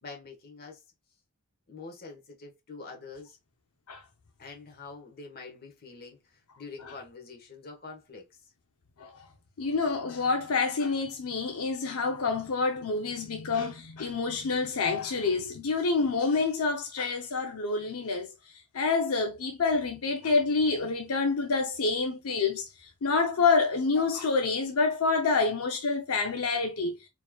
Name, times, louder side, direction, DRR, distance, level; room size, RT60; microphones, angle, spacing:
voice 1, 0.0-0.8 1.7-3.4 4.4-6.2 6.6-8.2, left 4 dB, 45° left, 1.2 m, -45 dB
voice 2, 9.6-18.3 18.7-22.7 23.0-26.9, left 4 dB, 85° left, 0.6 m, -27 dB
4.5 x 3.0 x 2.2 m
head